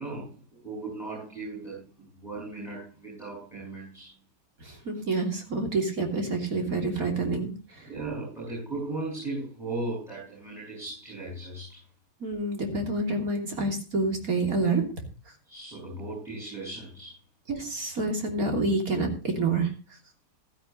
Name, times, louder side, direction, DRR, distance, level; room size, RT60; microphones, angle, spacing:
voice 1, 0.0-4.1 7.8-11.8 15.4-17.2, right 2 dB, ahead, -2 dB, 7.0 m, -37 dB
voice 2, 4.6-7.8 12.2-14.8 17.5-19.7, right 3 dB, 55° right, 3 dB, 3.4 m, -28 dB
15.5 x 13.0 x 3.1 m, 0.34 s
omnidirectional pair, 1.8 m